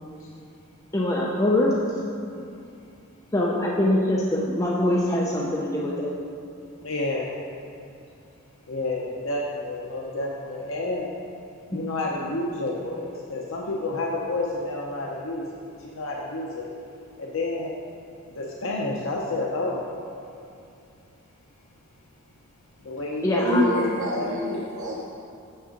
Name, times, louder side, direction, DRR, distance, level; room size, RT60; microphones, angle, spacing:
voice 1, 0.9-1.7 3.3-6.1 23.2-23.6, left 1 dB, 15° left, -4 dB, 0.6 m, -23 dB
voice 2, 6.8-7.3 8.7-11.1 11.7-15.4 15.9-16.7 17.2-17.7 18.4-19.8 22.9-23.8 24.1-24.6, left 2 dB, 75° left, -3 dB, 0.7 m, -29 dB
voice 3, 23.3-25.1, left 1 dB, 90° right, -5 dB, 0.9 m, -26 dB
6.9 x 6.6 x 5.1 m, 2.6 s
head